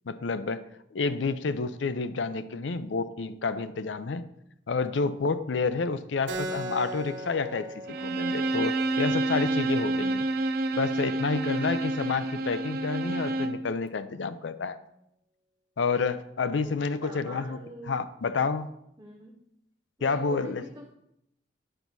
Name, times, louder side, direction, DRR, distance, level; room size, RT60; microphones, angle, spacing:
voice 1, 0.1-0.6 0.9-4.2 4.7-10.3 10.8-14.8 15.8-17.6 17.9-18.7 20.0-20.6, left 4 dB, 85° left, 13 dB, 0.5 m, -29 dB
Keyboard (musical), 6.3-11.4, right 1 dB, 80° right, 1.1 m, -40 dB
Bowed string instrument, 7.9-13.7, right 2 dB, 55° right, 0.5 m, -28 dB
voice 2, 16.6-18.0 19.0-19.4 20.0-20.9, right 1 dB, 20° right, 0 dB, 0.8 m, -44 dB
8.9 x 4.0 x 6.1 m, 0.80 s
head